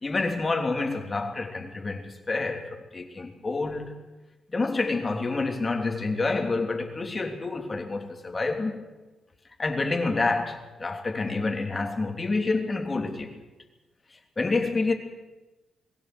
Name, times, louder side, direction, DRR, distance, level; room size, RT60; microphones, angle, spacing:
voice 1, 0.0-3.9 4.5-8.9 9.6-13.3 14.1-14.9, left 3 dB, 30° left, 3.2 m, -28 dB
22.0 x 16.5 x 8.0 m
cardioid pair, 95°, 0 cm